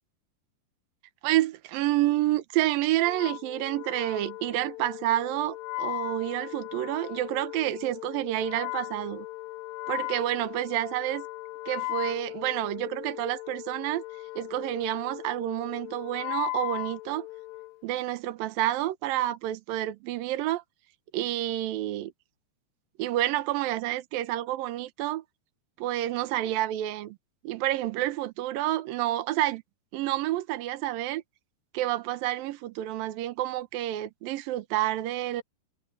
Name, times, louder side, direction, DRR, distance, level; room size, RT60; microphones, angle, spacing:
voice 1, 1.2-9.3 9.9-11.3 11.7-14.0 14.4-17.3 17.8-20.6 21.1-22.1 23.0-25.2 25.8-27.2 27.4-29.6 29.9-31.2 31.7-35.4, right 14 dB, 70° right, 2.7 m, -29 dB
Wind instrument woodwind instrument, 3.0-17.8, left 22 dB, 75° left, 2.4 m, -38 dB
omnidirectional pair, 4.6 m